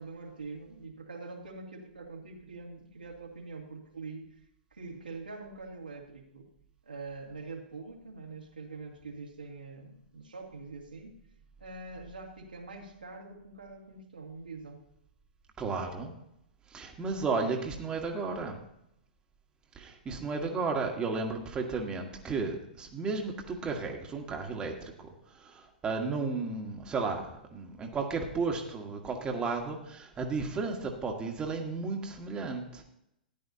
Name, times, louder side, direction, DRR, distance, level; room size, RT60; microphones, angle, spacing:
voice 1, 0.0-4.4 4.7-6.5 6.8-11.1 11.6-14.8, right 3 dB, 80° right, -1 dB, 2.3 m, -44 dB
voice 2, 15.6-16.1 16.7-18.6 19.8-25.1 25.3-32.8, right 4 dB, 20° right, 2 dB, 1.5 m, -33 dB
14.0 x 10.5 x 2.8 m, 0.79 s
figure-of-eight pair, 110°, 5 cm